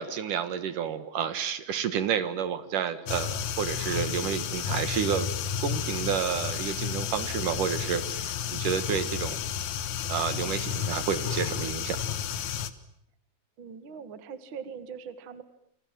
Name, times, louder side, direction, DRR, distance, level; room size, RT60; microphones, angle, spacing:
voice 1, 0.0-5.3 5.6-9.4 10.1-12.2, right 8 dB, 60° right, 13 dB, 2.3 m, -30 dB
sound 1, 3.1-12.7, left 8 dB, 70° left, 1.8 m, -32 dB
voice 2, 13.6-15.4, right 6 dB, 80° right, 12 dB, 1.1 m, -41 dB
29.5 x 25.5 x 7.6 m, 0.75 s
omnidirectional pair, 5.5 m